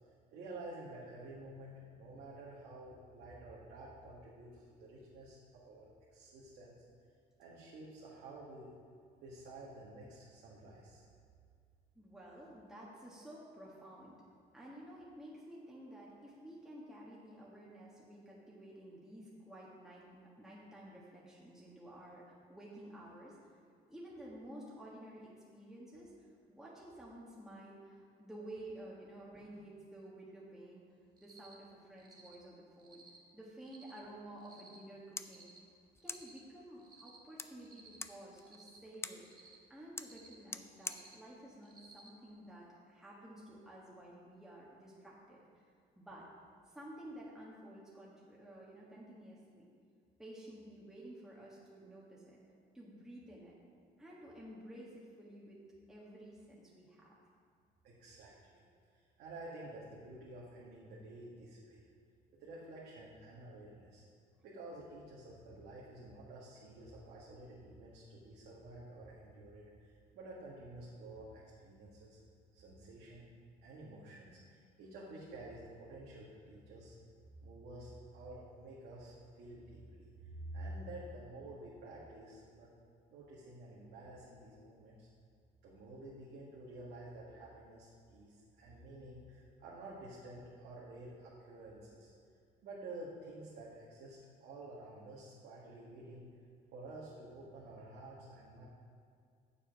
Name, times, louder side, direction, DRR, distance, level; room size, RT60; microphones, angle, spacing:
voice 1, 0.3-6.7 7.4-8.7 9.2-11.1 57.8-58.6 58.9-61.8 62.4-64.1 64.4-72.2 72.5-73.3 73.6-76.9 77.4-82.7 83.1-85.1 85.6-92.1 92.6-96.3 96.7-98.7, right 2 dB, 75° right, -6 dB, 1.5 m, -50 dB
voice 2, 11.9-14.2 14.5-23.4 23.9-30.8 31.2-33.0 33.3-35.5 36.0-45.6 45.9-46.3 46.7-49.7 50.2-52.4 52.7-53.6 54.0-57.1, right 1 dB, 5° right, -6 dB, 1.4 m, -52 dB
Cricket, 31.2-31.5 32.0-32.3 32.8-33.2 33.6-34.0 34.4-34.8 35.2-35.6 36.0-36.4 36.8-37.2 37.6-38.0 38.4-38.8 39.2-39.5 40.0-40.3 40.8-41.1 41.6-42.1, right 3 dB, 25° right, 1.2 m, -59 dB
sound 1, 34.7-42.8, left 4 dB, 15° left, 0.3 m, -50 dB
7.1 x 6.9 x 5.3 m, 2.2 s
cardioid pair, 110°, 17 cm